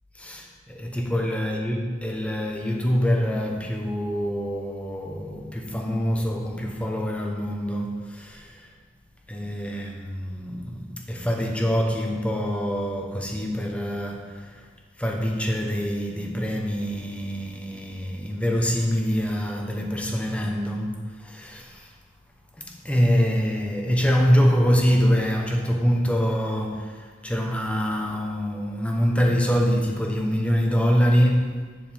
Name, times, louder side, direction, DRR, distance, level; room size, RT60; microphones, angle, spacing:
voice 1, 0.1-8.7 9.3-14.7 15.0-21.9 22.6-31.6, equal, 5° left, 1 dB, 1.1 m, -25 dB
7.7 x 6.4 x 7.4 m, 1.5 s
head